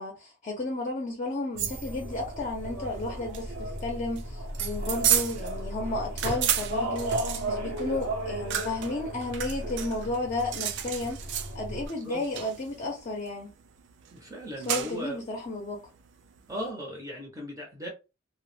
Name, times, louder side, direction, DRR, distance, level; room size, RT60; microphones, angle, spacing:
voice 1, 0.0-13.5 14.7-15.8, left 2 dB, 40° left, 0.5 m, -33 dB
sound 1, 1.5-11.9, right 1 dB, 90° right, 0.7 m, -35 dB
sound 2, 1.6-16.7, right 9 dB, 60° right, 0.3 m, -34 dB
voice 2, 14.1-15.3 16.5-17.9, equal, 15° right, 0.6 m, -37 dB
2.1 x 2.0 x 3.1 m
head